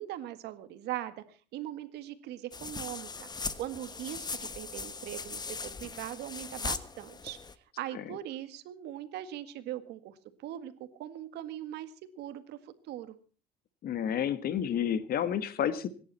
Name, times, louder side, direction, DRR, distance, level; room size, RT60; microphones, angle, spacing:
voice 1, 0.0-3.3 3.6-7.4 7.8-13.2, right 12 dB, 85° right, 11 dB, 1.9 m, -40 dB
sound 1, 2.5-7.5, left 4 dB, 25° left, 1.2 m, -39 dB
voice 2, 13.8-15.9, left 9 dB, 65° left, 13 dB, 1.5 m, -30 dB
26.0 x 11.0 x 4.2 m, 0.41 s
cardioid pair, 110°, 17 cm